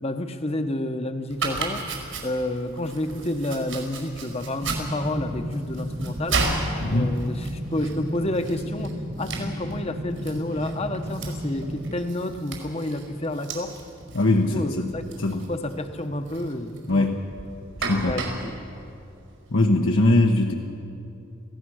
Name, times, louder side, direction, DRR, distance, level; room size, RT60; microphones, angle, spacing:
voice 1, 0.0-1.9 2.2-6.5 6.9-13.8 14.3-15.1 15.5-17.2 18.1-18.5, left 1 dB, 30° left, 8 dB, 1.0 m, -30 dB
Domestic sounds home sounds, 1.3-19.8, right 3 dB, 80° right, 5.3 m, -35 dB
sound 1, 4.6-11.9, equal, 25° right, 1.3 m, -34 dB
voice 2, 6.8-7.1 14.1-14.9 15.2-15.5 16.9-17.2 17.9-18.2 19.5-20.5, left 2 dB, 70° left, 1 dB, 1.1 m, -21 dB
26.0 x 16.5 x 6.3 m, 2.7 s
head